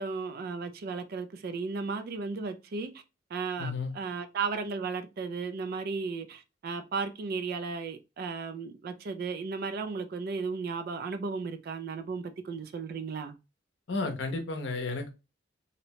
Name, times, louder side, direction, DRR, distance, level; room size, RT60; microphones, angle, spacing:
voice 1, 0.0-2.9 3.3-13.3, right 4 dB, 50° right, 0.3 m, -35 dB
voice 2, 3.6-3.9 13.9-15.1, left 3 dB, 65° left, 0.7 m, -32 dB
2.7 x 2.1 x 2.7 m
head